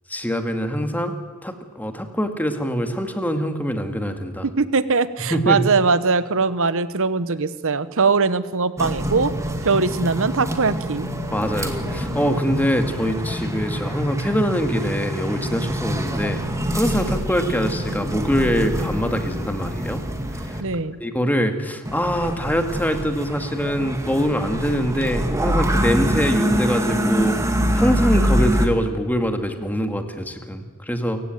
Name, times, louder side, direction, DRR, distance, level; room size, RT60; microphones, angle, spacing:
voice 1, 0.1-1.1 1.4-4.5 5.3-5.6 11.3-16.4 16.7-20.0 20.3-20.6 21.0-31.2, equal, 10° left, 6 dB, 2.1 m, -24 dB
voice 2, 4.4-9.3 9.6-11.1 20.6-21.0, right 4 dB, 65° right, 15 dB, 1.1 m, -21 dB
sound 1, 8.8-20.6 21.9-28.7, equal, 15° right, 2.1 m, -25 dB
28.5 x 16.0 x 9.1 m, 1.5 s
head